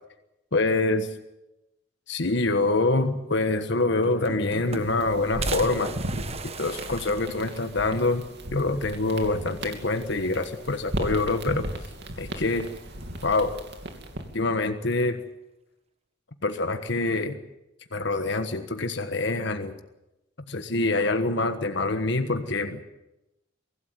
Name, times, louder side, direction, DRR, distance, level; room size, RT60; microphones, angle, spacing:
voice 1, 0.5-1.1 2.1-6.0 6.4-8.2 8.5-11.7 12.2-12.7 13.2-13.6 14.3-15.2 16.4-17.4 17.9-19.7 20.5-22.8, left 2 dB, 70° left, 7 dB, 1.4 m, -25 dB
sound 1, 3.4-3.5 3.8-5.1 5.4-8.0 8.4-8.5 8.8-8.9 10.0-10.5 10.9-11.6 12.7-13.2, right 4 dB, 35° right, 1.1 m, -38 dB
sound 2, 4.6-14.4, right 1 dB, 65° right, 3.0 m, -36 dB
24.0 x 16.5 x 7.8 m, 0.95 s
head